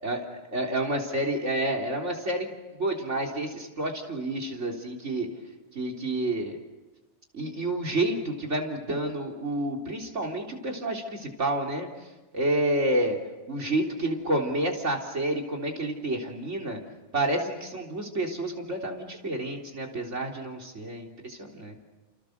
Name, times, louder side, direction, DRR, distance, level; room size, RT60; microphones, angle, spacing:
voice 1, 0.0-2.5 2.8-5.3 5.7-6.6 7.3-11.9 12.3-13.2 13.5-16.8 17.1-21.8, right 1 dB, 70° right, 1 dB, 4.1 m, -29 dB
29.5 x 29.0 x 6.7 m, 1.2 s
omnidirectional pair, 1.3 m